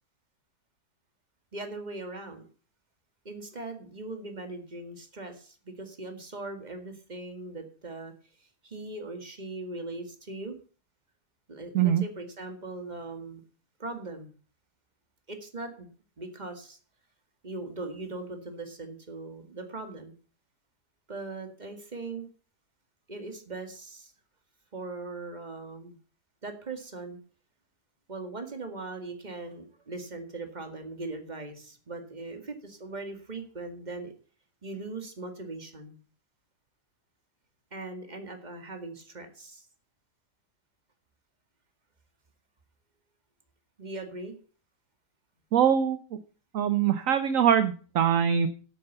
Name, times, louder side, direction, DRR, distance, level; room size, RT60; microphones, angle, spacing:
voice 1, 1.5-2.4 3.2-8.1 8.4-10.6 11.5-13.4 13.8-14.3 15.3-15.9 16.2-16.8 17.4-20.1 21.1-22.3 23.1-24.1 24.7-26.0 26.4-27.2 28.1-34.1 34.6-36.0 37.7-39.7 43.8-44.4, right 3 dB, 30° right, 5 dB, 2.1 m, -40 dB
voice 2, 45.5-46.0 46.5-48.5, right 8 dB, 60° right, 11 dB, 1.1 m, -23 dB
9.2 x 8.9 x 6.9 m, 0.40 s
omnidirectional pair, 1.6 m